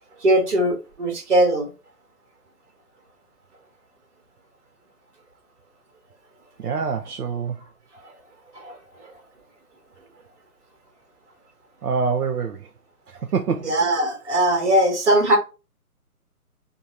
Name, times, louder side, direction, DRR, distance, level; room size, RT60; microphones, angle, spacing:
voice 1, 0.2-1.7 8.6-8.8 13.6-15.4, right 1 dB, 50° right, 1.4 m, -20 dB
voice 2, 6.6-7.6 11.8-12.7 13.1-13.7, right 5 dB, 80° right, 0.6 m, -25 dB
5.2 x 2.1 x 2.7 m
figure-of-eight pair, 140°, 46 cm